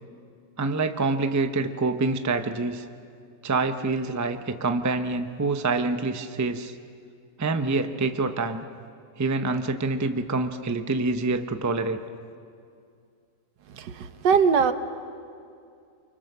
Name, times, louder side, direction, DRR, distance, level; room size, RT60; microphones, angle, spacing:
voice 1, 0.6-2.9 3.4-6.7 7.4-8.7 9.2-12.0, right 3 dB, 15° right, 7 dB, 0.5 m, -26 dB
voice 2, 13.8-14.7, right 6 dB, 80° right, 10 dB, 1.6 m, -21 dB
29.5 x 24.5 x 6.9 m, 2.4 s
omnidirectional pair, 1.9 m